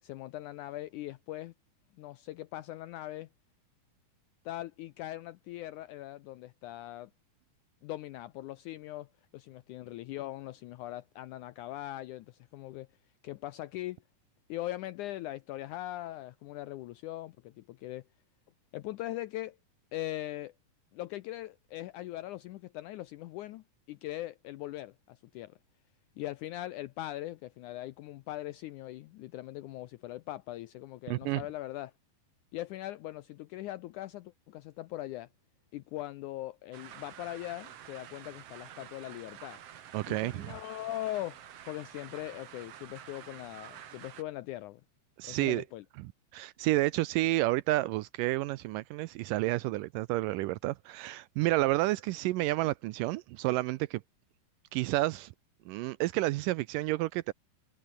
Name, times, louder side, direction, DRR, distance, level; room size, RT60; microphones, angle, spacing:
voice 1, 0.0-1.5 2.0-3.3 4.5-7.1 7.8-12.9 13.2-14.0 14.5-18.0 18.7-19.6 19.9-20.5 20.9-25.6 26.2-31.9 32.5-35.3 35.7-39.6 40.1-41.4 41.7-44.8 45.2-45.8, left 15 dB, 80° left, 1.8 m, -40 dB
voice 2, 31.1-31.4 39.9-40.5 45.2-45.6 46.0-46.1 46.3-54.0 54.7-55.3 55.7-57.3, right 18 dB, 80° right, 2.0 m, -30 dB
sound 1, 36.7-44.2, right 10 dB, 55° right, 2.0 m, -49 dB
omnidirectional pair, 4.2 m